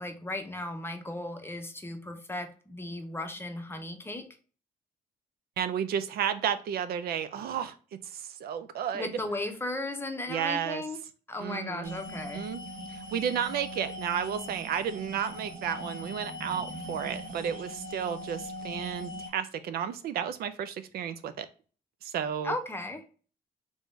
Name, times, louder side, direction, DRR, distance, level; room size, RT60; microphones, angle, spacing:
voice 1, 0.0-4.2 8.9-11.0 11.3-12.5 22.4-23.0, left 2 dB, 15° left, 5 dB, 0.7 m, -36 dB
voice 2, 5.6-7.7 8.0-9.1 10.3-10.8 11.4-12.0 12.3-12.6 12.9-21.5 22.0-22.5, right 8 dB, 80° right, 11 dB, 0.5 m, -32 dB
sound 1, 11.8-19.3, equal, 60° right, 1.1 m, -40 dB
3.6 x 3.4 x 2.5 m, 0.38 s
cardioid pair, 120°, 16 cm